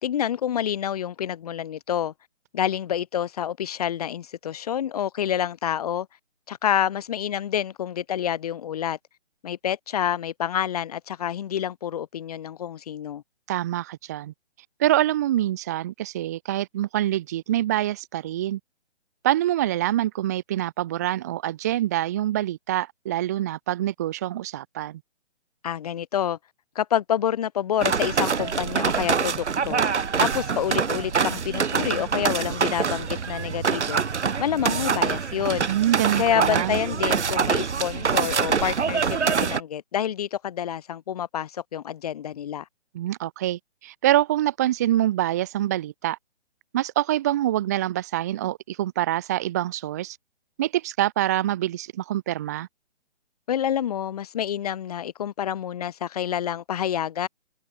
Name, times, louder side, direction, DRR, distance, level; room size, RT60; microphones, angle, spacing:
voice 1, 0.0-2.1 2.5-6.1 6.5-9.0 9.4-13.2 25.6-26.4 26.7-29.8 30.2-34.0 34.4-35.7 36.2-42.6 53.5-57.3, left 10 dB, 35° left, 1.0 m, -28 dB
voice 2, 13.5-14.3 14.8-18.6 19.2-25.0 35.7-36.8 42.9-46.2 46.7-50.2 50.6-52.7, right 13 dB, 15° right, 0.7 m, -25 dB
sound 1, 27.8-39.6, right 6 dB, 90° right, 1.5 m, -25 dB
hypercardioid pair, 160°, 34 cm